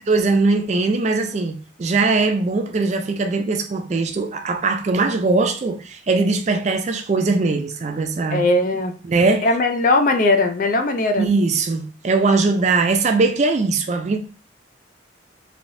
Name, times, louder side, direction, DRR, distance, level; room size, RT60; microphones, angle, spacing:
voice 1, 0.0-8.4 9.0-9.5 11.2-14.2, right 3 dB, 35° right, 0.4 m, -20 dB
voice 2, 8.3-8.9 9.4-11.3, left 2 dB, 45° left, 0.4 m, -19 dB
3.2 x 2.7 x 2.6 m
head